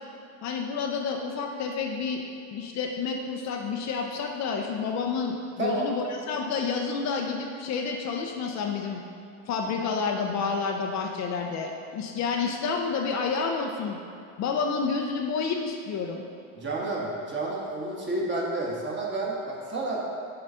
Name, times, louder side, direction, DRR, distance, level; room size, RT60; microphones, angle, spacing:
voice 1, 0.4-2.2 2.5-9.0 9.5-14.0 14.4-16.2, left 5 dB, 45° left, 2 dB, 0.7 m, -29 dB
voice 2, 16.5-20.0, right 2 dB, 30° right, -3 dB, 1.5 m, -30 dB
6.8 x 3.9 x 5.5 m, 2.6 s
supercardioid pair, 115°, 39 cm